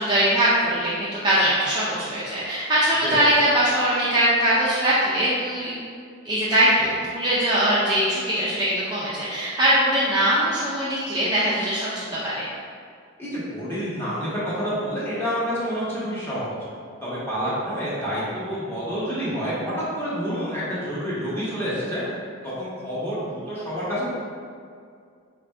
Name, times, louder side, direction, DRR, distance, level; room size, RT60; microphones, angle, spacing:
voice 1, 0.0-5.7 6.2-12.5, right 1 dB, 20° right, -9 dB, 0.5 m, -21 dB
voice 2, 13.2-16.5 17.0-22.0 22.4-24.1, equal, 10° left, -10 dB, 1.1 m, -28 dB
4.4 x 2.6 x 3.3 m, 2.2 s
head